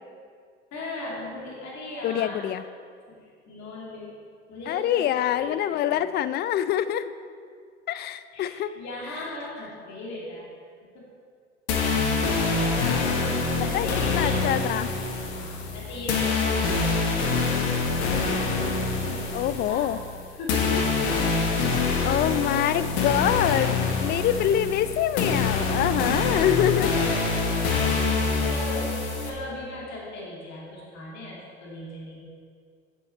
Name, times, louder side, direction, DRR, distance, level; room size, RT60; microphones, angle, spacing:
voice 1, 0.7-2.5 3.1-4.1 4.5-6.0 8.3-10.5 10.9-11.1 12.6-12.9 13.6-14.5 15.3-16.9 17.4-19.9 20.3-20.9 26.8-27.3 27.8-32.2, left 1 dB, 50° left, -4 dB, 2.4 m, -38 dB
voice 2, 2.0-2.6 4.7-7.1 7.9-8.7 12.8-13.9 14.1-14.9 19.3-20.0 22.0-26.9, left 11 dB, 30° left, 13 dB, 0.4 m, -25 dB
sound 1, 11.7-29.3, left 4 dB, 75° left, 1.4 m, -25 dB
8.2 x 7.9 x 4.3 m, 2.1 s
hypercardioid pair, 80°, 34 cm